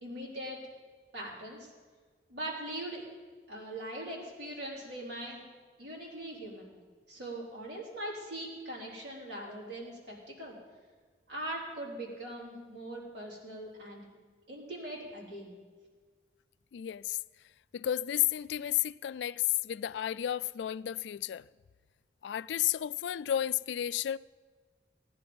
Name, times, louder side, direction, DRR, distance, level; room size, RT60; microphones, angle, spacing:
voice 1, 0.0-0.6 1.1-1.7 2.3-3.1 3.5-5.4 5.8-6.7 7.1-10.5 11.3-14.1 14.5-15.5, right 1 dB, 70° right, 3.8 m, -41 dB
voice 2, 16.7-17.2 17.7-21.5 22.2-24.2, left 12 dB, 80° left, 0.3 m, -32 dB
17.5 x 10.0 x 5.2 m
head